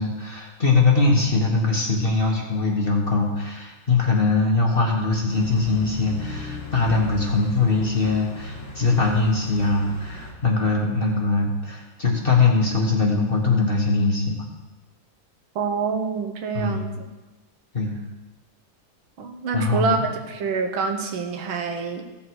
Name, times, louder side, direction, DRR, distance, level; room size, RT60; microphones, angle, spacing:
voice 1, 0.0-14.4 16.5-16.8 17.7-17.9 19.5-20.0, left 3 dB, 30° left, -1 dB, 1.3 m, -21 dB
sound 1, 5.3-10.3, left 2 dB, 10° left, 1.5 m, -37 dB
voice 2, 15.6-16.9 19.2-22.1, right 5 dB, 80° right, 4 dB, 1.9 m, -26 dB
15.5 x 7.2 x 4.7 m, 1.1 s
omnidirectional pair, 2.2 m